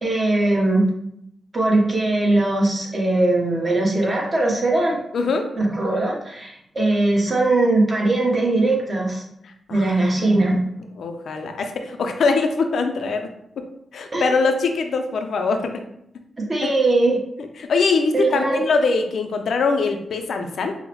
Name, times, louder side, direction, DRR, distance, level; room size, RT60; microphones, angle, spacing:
voice 1, 0.0-0.9 1.5-5.0 5.6-9.2 9.7-10.7 14.1-14.3 16.4-17.2 18.1-18.7, right 2 dB, 35° right, -2 dB, 1.1 m, -20 dB
voice 2, 5.1-5.5 9.7-10.4 11.0-13.7 13.9-15.8 16.6-16.7 17.4-20.8, left 4 dB, 80° left, 5 dB, 0.4 m, -23 dB
5.4 x 2.0 x 2.9 m, 0.76 s
cardioid pair, 80°, 0 cm